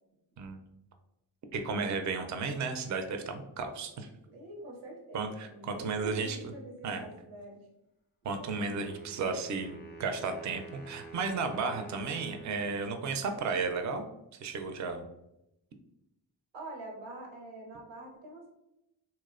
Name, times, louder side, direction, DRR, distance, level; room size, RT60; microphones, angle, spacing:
voice 1, 1.5-4.1 5.1-6.5 6.8-7.0 8.2-14.1 14.4-15.1, right 4 dB, 40° right, 6 dB, 0.4 m, -34 dB
voice 2, 4.3-7.7 16.5-18.5, right 1 dB, 90° right, 0 dB, 0.7 m, -45 dB
Wind instrument woodwind instrument, 8.6-13.6, right 3 dB, 25° left, 0.5 m, -48 dB
2.6 x 2.0 x 2.4 m, 0.87 s
cardioid pair, 40°, 45 cm